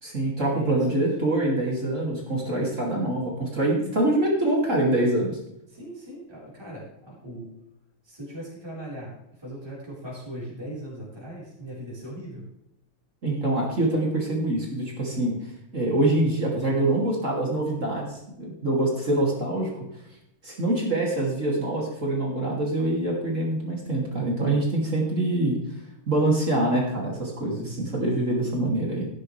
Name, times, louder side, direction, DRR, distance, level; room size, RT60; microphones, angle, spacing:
voice 1, 0.0-5.4 13.2-15.3 15.7-19.7 20.4-25.6 26.1-29.1, right 1 dB, 35° right, -2 dB, 2.9 m, -25 dB
voice 2, 0.5-1.1 5.7-7.5 8.0-12.4, right 1 dB, 10° right, -6 dB, 4.3 m, -39 dB
13.5 x 10.5 x 3.3 m, 0.83 s
omnidirectional pair, 2.4 m